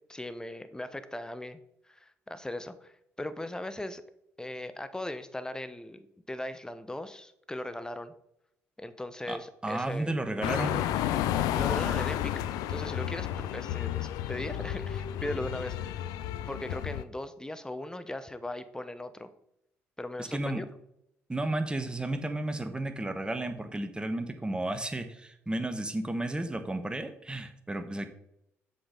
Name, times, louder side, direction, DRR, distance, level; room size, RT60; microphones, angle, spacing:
voice 1, 0.1-1.6 1.9-4.0 4.4-8.1 8.8-10.9 11.5-12.3 12.7-15.9 16.5-19.3 20.0-20.7, left 1 dB, 10° left, 12 dB, 0.9 m, -38 dB
voice 2, 9.6-10.7 20.2-20.6 21.3-28.1, right 1 dB, 15° right, 8 dB, 1.3 m, -33 dB
sound 1, 10.4-17.0, left 11 dB, 75° left, 0.5 m, -31 dB
7.8 x 6.3 x 3.9 m, 0.79 s
hypercardioid pair, 55°, 7 cm